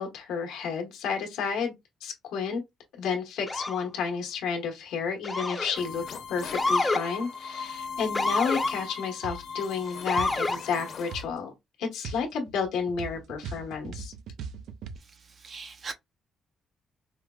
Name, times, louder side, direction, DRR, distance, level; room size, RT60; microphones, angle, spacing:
voice 1, 0.0-1.7 2.0-2.6 3.0-11.5 11.8-14.1, left 6 dB, 90° left, 1.0 m, -31 dB
Motor vehicle (road) / Siren, 3.5-3.8 5.2-5.8 6.5-7.0 8.1-8.7 10.1-10.6, left 2 dB, 20° left, 0.5 m, -27 dB
sound 1, 5.7-11.3, left 5 dB, 65° left, 0.8 m, -38 dB
sound 2, 9.2-9.5 10.2-10.4 11.1-11.3 12.0-15.0, right 5 dB, 80° right, 0.4 m, -39 dB
voice 2, 15.0-15.9, right 4 dB, 45° right, 0.7 m, -41 dB
4.7 x 2.0 x 2.3 m
cardioid pair, 90°, 0 cm